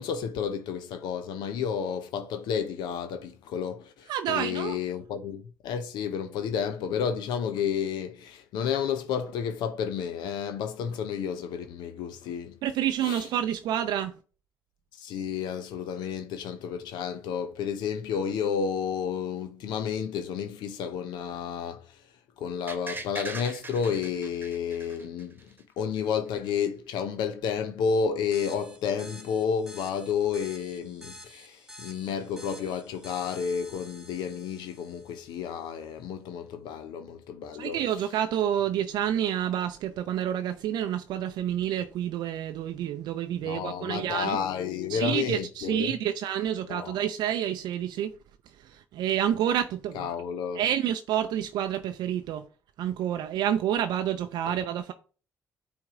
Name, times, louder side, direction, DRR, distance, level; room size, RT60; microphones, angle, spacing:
voice 1, 0.0-12.5 13.0-13.2 14.9-22.0 22.4-25.5 25.8-37.8 43.4-45.9 46.7-47.0 49.9-50.6 54.5-54.6, left 7 dB, 75° left, 0.6 m, -31 dB
voice 2, 4.1-4.8 12.6-14.1 37.6-44.4 44.9-48.1 48.6-50.1 50.5-52.5 52.8-54.9, right 10 dB, 70° right, 0.4 m, -29 dB
sound 1, 22.7-25.6 26.0-26.1, right 3 dB, 25° right, 1.1 m, -40 dB
sound 2, 28.3-35.5, left 1 dB, 5° right, 1.7 m, -49 dB
8.8 x 3.5 x 3.7 m
hypercardioid pair, 45°, 8 cm